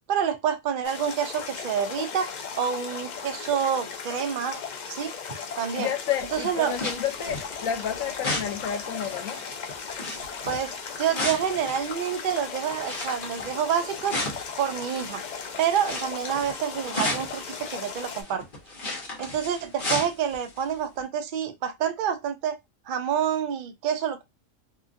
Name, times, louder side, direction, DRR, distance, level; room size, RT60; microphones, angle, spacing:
voice 1, 0.1-4.6 4.9-5.1 5.6-5.9 6.3-6.8 10.5-10.7 11.0-14.1 14.6-15.2 15.6-18.5 19.2-22.6 22.9-24.2, right 8 dB, 70° right, 0.4 m, -28 dB
sound 1, 0.8-18.2, left 6 dB, 60° left, 0.4 m, -37 dB
voice 2, 5.8-9.4, left 9 dB, 85° left, 1.1 m, -30 dB
sound 2, 6.2-15.3 15.7-20.7 21.0-21.1, left 2 dB, 45° left, 1.1 m, -35 dB
2.8 x 2.4 x 2.5 m
omnidirectional pair, 1.3 m